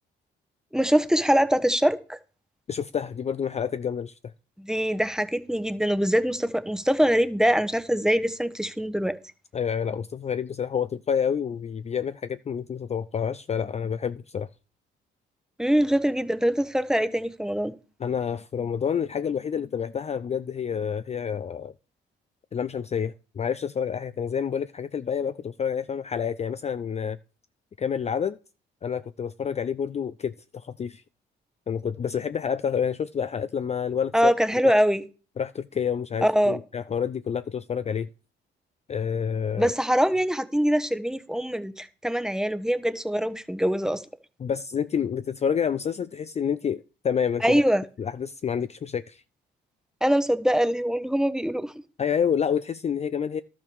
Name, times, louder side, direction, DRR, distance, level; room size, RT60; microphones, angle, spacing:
voice 1, 0.7-2.2 4.6-9.2 15.6-17.7 34.1-35.0 36.2-36.6 39.6-44.0 47.4-47.8 50.0-51.7, equal, 5° right, 1.0 m, -23 dB
voice 2, 2.7-4.1 9.5-14.5 18.0-21.7 22.5-27.2 27.8-28.4 28.8-31.0 31.7-34.3 34.6-34.8 35.4-38.1 38.9-39.7 44.4-47.6 48.0-49.2 52.0-53.4, left 7 dB, 35° left, 0.4 m, -28 dB
12.0 x 6.0 x 6.3 m
cardioid pair, 90°, 20 cm